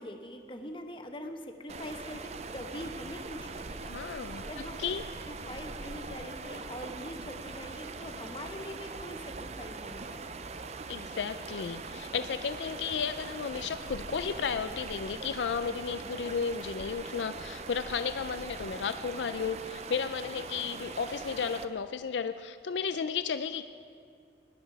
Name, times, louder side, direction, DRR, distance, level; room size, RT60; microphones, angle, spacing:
voice 1, 0.0-4.9 5.3-10.4, left 1 dB, 30° left, 5 dB, 1.0 m, -43 dB
sound 1, 1.7-21.7, right 4 dB, 35° right, 0.5 m, -42 dB
voice 2, 3.9-5.0 10.9-23.6, left 6 dB, 85° left, 11 dB, 0.4 m, -33 dB
18.5 x 11.5 x 4.7 m, 2.3 s
head